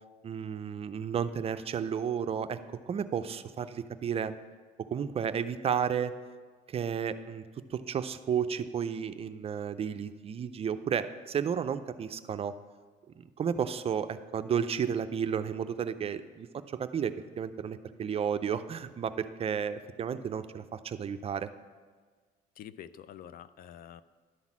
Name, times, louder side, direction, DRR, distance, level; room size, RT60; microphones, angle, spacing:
voice 1, 0.2-2.6 2.9-4.3 4.9-6.1 6.7-7.4 7.7-12.5 13.2-21.5, right 7 dB, 35° right, 11 dB, 0.4 m, -32 dB
voice 2, 22.6-24.0, left 10 dB, 60° left, 15 dB, 0.4 m, -47 dB
11.0 x 4.0 x 7.3 m, 1.5 s
cardioid pair, 110°, 17 cm